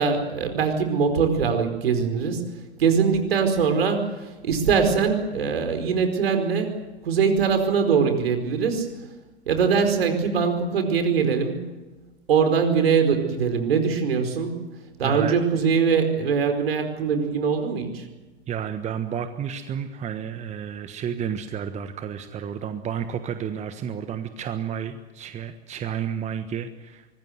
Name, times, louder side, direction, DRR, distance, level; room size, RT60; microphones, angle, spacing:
voice 1, 0.0-2.4 2.8-8.9 9.5-11.7 12.3-14.6 15.0-18.0, right 6 dB, 65° right, 7 dB, 4.9 m, -22 dB
voice 2, 15.0-15.5 18.5-27.1, right 8 dB, 20° right, 9 dB, 1.4 m, -31 dB
24.5 x 21.0 x 8.1 m, 1.2 s
figure-of-eight pair, 95°, 33 cm